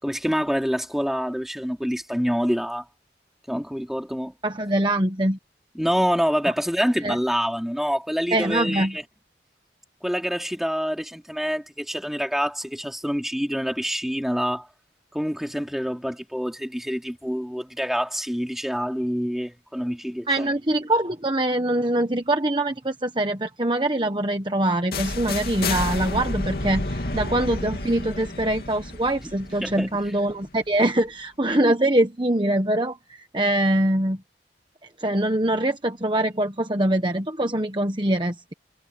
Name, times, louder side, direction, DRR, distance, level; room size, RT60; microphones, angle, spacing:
voice 1, 0.0-2.8 3.5-4.3 5.7-9.0 10.0-14.7 15.1-20.5 29.6-29.9, equal, ahead, 3.1 m, -26 dB
voice 2, 4.4-5.4 7.0-7.2 8.3-9.0 20.3-34.2 35.0-38.5, right 1 dB, 25° right, 1.2 m, -23 dB
sound 1, 24.9-30.7, left 2 dB, 55° left, 2.8 m, -30 dB
head